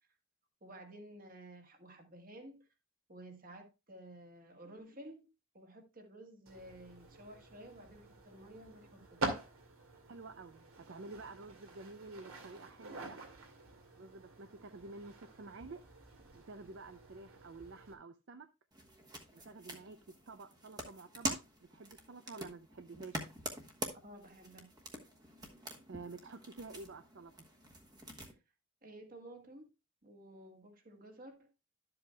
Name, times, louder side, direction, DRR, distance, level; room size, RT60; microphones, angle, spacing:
voice 1, 0.6-2.7 3.1-5.3 5.5-9.2 24.0-24.7 25.7-25.8 28.3-28.4 28.8-29.7 30.0-31.5, right 1 dB, 40° right, 1.7 m, -53 dB
sound 1, 6.5-17.9, right 2 dB, 75° right, 2.2 m, -46 dB
voice 2, 10.1-13.2 14.0-15.8 16.3-18.5 19.3-20.0 20.3-21.4 21.7-23.3 25.9-27.4, right 3 dB, 55° right, 0.5 m, -50 dB
sound 2, 18.7-28.3, right 1 dB, 20° right, 1.2 m, -45 dB
12.0 x 7.7 x 2.3 m
head